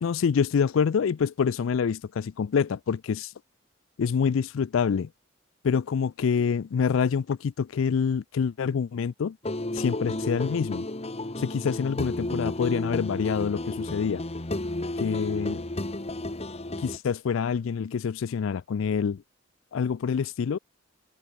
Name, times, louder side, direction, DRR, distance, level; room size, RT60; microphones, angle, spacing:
voice 1, 0.0-3.3 4.0-5.1 5.6-9.4 9.7-10.8 11.4-14.2 15.0-15.6 16.8-19.2 19.7-20.6, left 6 dB, 80° left, 0.4 m, -26 dB
sound 1, 9.4-17.0, left 1 dB, 35° left, 1.6 m, -32 dB
head